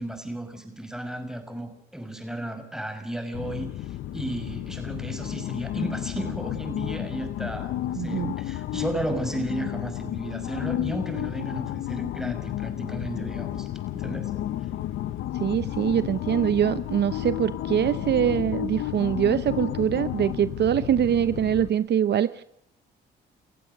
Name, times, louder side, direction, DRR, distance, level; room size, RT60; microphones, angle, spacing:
voice 1, 0.0-14.3, right 1 dB, ahead, 6 dB, 5.6 m, -34 dB
sound 1, 3.3-21.7, left 13 dB, 85° left, 1.0 m, -32 dB
voice 2, 7.9-8.4 15.4-22.4, right 9 dB, 60° right, 13 dB, 0.8 m, -24 dB
30.0 x 15.0 x 6.7 m, 0.73 s
cardioid pair, 90°, 20 cm